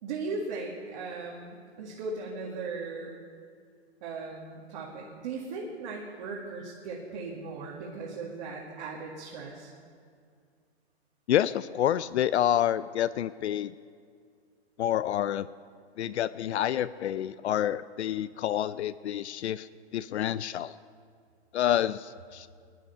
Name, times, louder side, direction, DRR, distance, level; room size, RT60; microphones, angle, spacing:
voice 1, 0.0-3.1 4.0-9.7, right 3 dB, 40° right, -4 dB, 2.1 m, -38 dB
voice 2, 11.3-13.7 14.8-15.5 16.0-19.7 19.9-20.7 21.5-22.5, left 11 dB, 80° left, 16 dB, 0.5 m, -28 dB
20.0 x 11.0 x 5.6 m, 2.2 s
hypercardioid pair, 165°, 33 cm